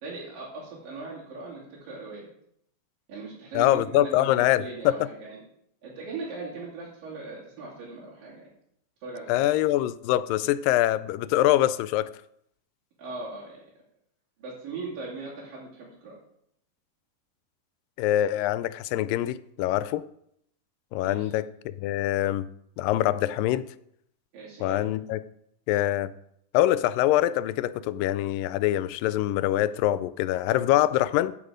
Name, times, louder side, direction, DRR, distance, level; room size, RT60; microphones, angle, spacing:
voice 1, 0.0-2.3 3.1-5.4 5.8-8.5 9.0-9.4 13.0-13.6 14.4-16.2 21.0-21.3 24.3-24.8, right 3 dB, 80° right, 4.4 m, -39 dB
voice 2, 3.5-4.9 9.3-12.1 18.0-20.0 20.9-22.5 22.8-23.7 24.6-25.2 25.7-26.1 26.5-31.4, left 14 dB, 85° left, 2.2 m, -24 dB
14.5 x 6.4 x 5.0 m
omnidirectional pair, 3.9 m